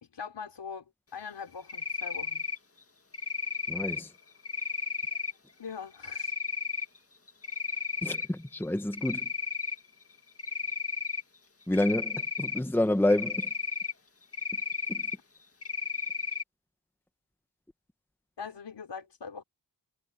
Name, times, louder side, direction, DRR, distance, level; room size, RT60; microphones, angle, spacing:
voice 1, 0.0-2.4 5.6-6.3 18.4-19.4, left 6 dB, 70° left, 4.4 m, -42 dB
Cricket, 1.7-2.6 3.1-4.0 4.4-5.3 6.0-6.8 7.3-8.3 8.6-9.8 10.4-11.2 11.7-12.6 13.1-13.9 14.3-15.1 15.6-16.4, left 5 dB, 30° left, 2.0 m, -33 dB
voice 2, 3.7-4.1 8.0-9.3 11.7-13.5 14.9-15.0, left 1 dB, 5° left, 1.1 m, -28 dB
wide cardioid pair, 120°, 43 cm